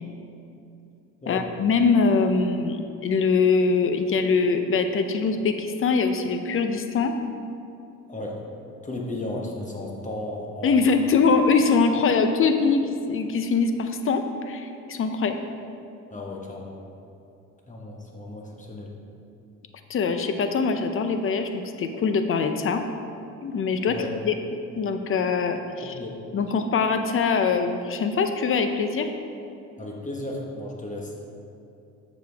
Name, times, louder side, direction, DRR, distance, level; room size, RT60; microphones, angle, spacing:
voice 1, 1.3-7.1 10.6-15.5 19.9-22.8 23.4-24.0 24.2-24.3 24.8-25.6 25.8-25.9 26.3-29.1, left 4 dB, 45° left, 7 dB, 0.6 m, -23 dB
voice 2, 8.1-8.4 8.8-10.9 16.1-16.8 17.7-18.9 23.9-24.1 25.8-26.1 29.8-31.1, left 2 dB, 25° left, -1 dB, 1.3 m, -34 dB
7.1 x 6.6 x 3.4 m, 2.7 s
cardioid pair, 90°, 30 cm